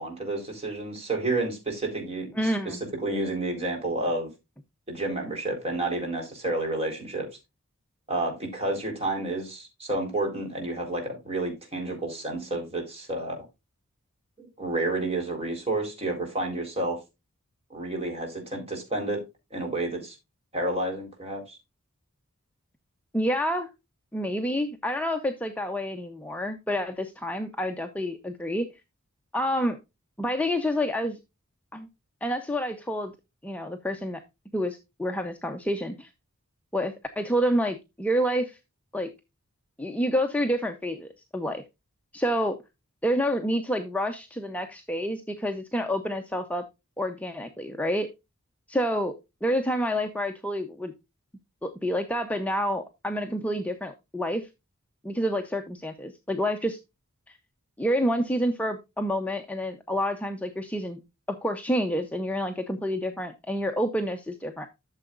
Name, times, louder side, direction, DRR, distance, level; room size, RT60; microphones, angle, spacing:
voice 1, 0.0-4.3 4.9-7.3 8.1-13.4 14.4-17.0 17.7-19.2 19.5-20.2 20.5-21.6, right 2 dB, 30° right, 2 dB, 4.0 m, -30 dB
voice 2, 2.3-2.8 23.1-23.7 24.1-28.7 29.3-29.8 30.2-31.2 31.7-31.9 32.2-33.1 33.4-34.2 34.5-36.1 36.7-38.6 38.9-39.1 39.8-41.6 42.1-42.6 43.0-46.6 47.0-48.1 48.7-50.9 51.6-54.5 55.0-56.8 57.3-57.4 57.8-61.0 61.3-64.7, equal, 5° left, 4 dB, 0.6 m, -28 dB
13.0 x 6.9 x 2.5 m, 0.24 s
head